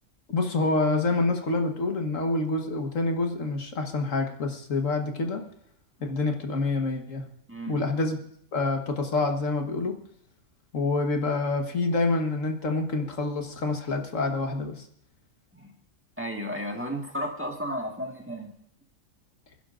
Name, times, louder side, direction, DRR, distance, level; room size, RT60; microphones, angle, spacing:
voice 1, 0.3-5.5 6.0-7.3 7.7-8.2 8.5-9.9 10.7-14.9, left 3 dB, 75° left, 4 dB, 1.8 m, -27 dB
voice 2, 16.2-18.5, equal, 10° right, 1 dB, 1.6 m, -33 dB
26.5 x 11.0 x 2.6 m, 0.66 s
omnidirectional pair, 1.3 m